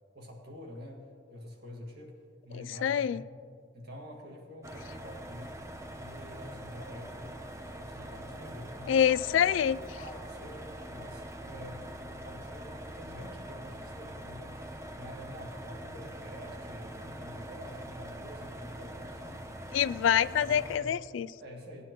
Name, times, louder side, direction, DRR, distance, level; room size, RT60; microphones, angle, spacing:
voice 1, 0.1-2.2 2.4-3.3 3.7-5.6 6.0-7.4 7.7-9.0 10.0-19.4 19.8-21.0 21.4-21.9, left 1 dB, 60° right, 0 dB, 1.8 m, -47 dB
voice 2, 2.5-3.2 8.9-10.0 19.7-21.3, left 9 dB, 80° left, 17 dB, 0.3 m, -26 dB
sound 1, 4.6-20.8, right 1 dB, 15° right, 0.7 m, -43 dB
17.5 x 9.7 x 3.0 m, 2.1 s
head